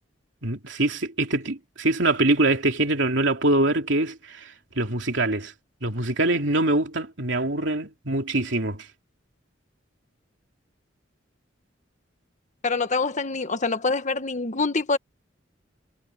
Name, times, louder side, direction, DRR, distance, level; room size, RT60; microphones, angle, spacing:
voice 1, 0.4-4.5 4.7-5.5 5.8-8.8, right 2 dB, 70° right, 3.4 m, -24 dB
voice 2, 12.6-15.0, left 4 dB, 40° left, 1.5 m, -25 dB
head